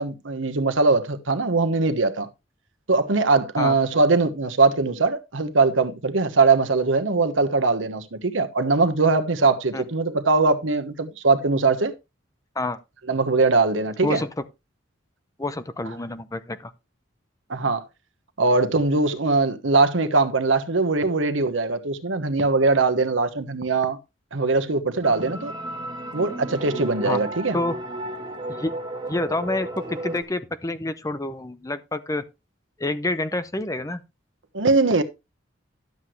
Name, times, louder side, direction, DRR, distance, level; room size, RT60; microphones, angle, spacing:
voice 1, 0.0-2.3 2.9-11.9 13.1-14.2 17.5-17.8 18.4-24.0 24.3-25.5 26.1-27.6 34.5-35.0, right 3 dB, 85° right, 1.2 m, -21 dB
voice 2, 15.4-16.7 27.0-27.2 27.5-27.8 28.5-28.7 29.0-32.2 32.8-34.0, left 2 dB, 15° left, 0.7 m, -28 dB
sound 1, 25.0-30.2, right 1 dB, 25° right, 1.7 m, -33 dB
12.0 x 7.9 x 3.2 m
head